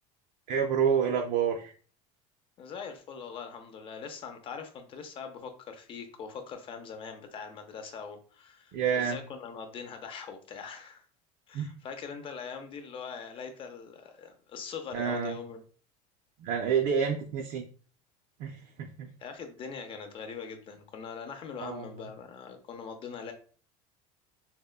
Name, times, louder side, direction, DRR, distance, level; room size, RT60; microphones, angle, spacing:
voice 1, 0.5-1.7 8.7-9.2 11.5-11.7 14.9-15.4 16.4-17.6 18.4-19.1 21.6-21.9, right 7 dB, 55° right, 2 dB, 0.4 m, -28 dB
voice 2, 2.6-11.0 11.5-15.6 19.2-23.3, left 6 dB, 35° left, 6 dB, 0.5 m, -42 dB
3.5 x 2.1 x 2.2 m, 0.41 s
cardioid pair, 135°, 16 cm